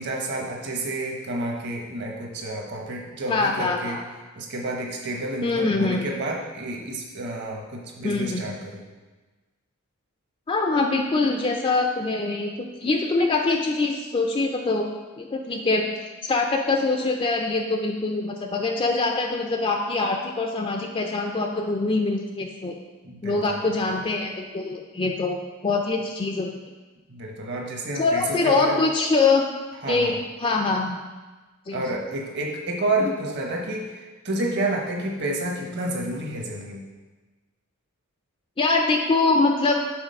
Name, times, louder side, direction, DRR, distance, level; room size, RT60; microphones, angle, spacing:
voice 1, 0.0-4.0 4.4-8.8 23.0-23.6 27.1-28.9 29.8-30.1 31.7-36.8, right 2 dB, 55° right, 0 dB, 1.1 m, -30 dB
voice 2, 3.3-4.0 5.4-6.1 8.0-8.5 10.5-14.9 15.2-22.8 23.2-26.6 27.9-29.4 29.9-31.0 31.7-31.8 38.6-39.8, left 3 dB, 25° left, 2 dB, 0.3 m, -24 dB
6.2 x 3.9 x 5.2 m, 1.3 s
head